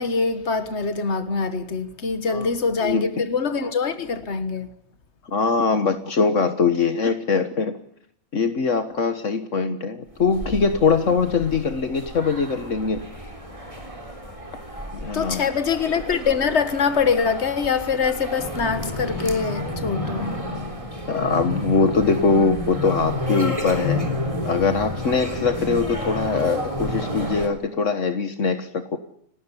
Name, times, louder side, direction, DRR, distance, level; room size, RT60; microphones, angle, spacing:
voice 1, 0.0-4.7 15.1-20.4, left 5 dB, 40° left, 1.0 m, -24 dB
voice 2, 5.3-7.7 8.3-13.0 14.9-15.4 21.1-24.1 24.4-29.0, left 4 dB, 60° left, 0.7 m, -22 dB
sound 1, 10.1-27.5, left 1 dB, 10° right, 3.2 m, -31 dB
30.0 x 13.0 x 9.9 m
omnidirectional pair, 3.5 m